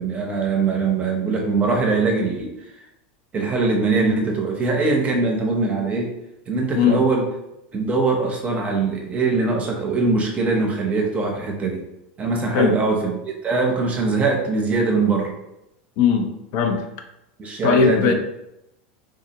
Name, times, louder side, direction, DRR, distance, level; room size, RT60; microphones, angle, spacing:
voice 1, 0.0-2.5 3.3-6.2 6.5-7.3 7.7-11.8 12.2-15.3 17.4-18.1, right 3 dB, 25° right, 1 dB, 0.7 m, -22 dB
voice 2, 16.0-16.8 17.6-18.1, left 6 dB, 55° left, 4 dB, 0.5 m, -19 dB
3.6 x 2.1 x 2.8 m, 0.85 s
supercardioid pair, 120°, 6 cm